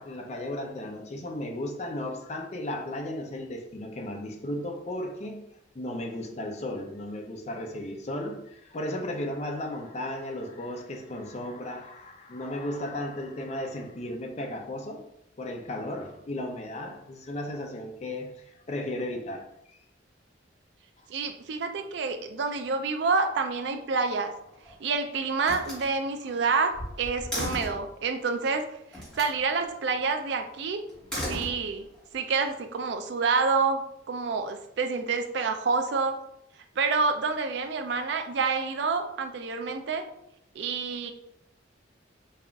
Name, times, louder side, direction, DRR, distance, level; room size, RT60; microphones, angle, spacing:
voice 1, 0.0-5.5 5.7-15.1 15.4-19.8 21.0-21.1, left 1 dB, 35° left, 0.4 m, -35 dB
voice 2, 21.1-24.3 24.8-28.6 29.2-30.8 31.3-31.9 32.1-36.2 36.8-40.0 40.6-41.1, right 4 dB, 65° right, 0.4 m, -28 dB
Slam, 24.3-24.9 25.4-27.9 28.9-29.4 30.9-32.0, equal, 5° left, 1.2 m, -36 dB
5.4 x 2.4 x 2.3 m
head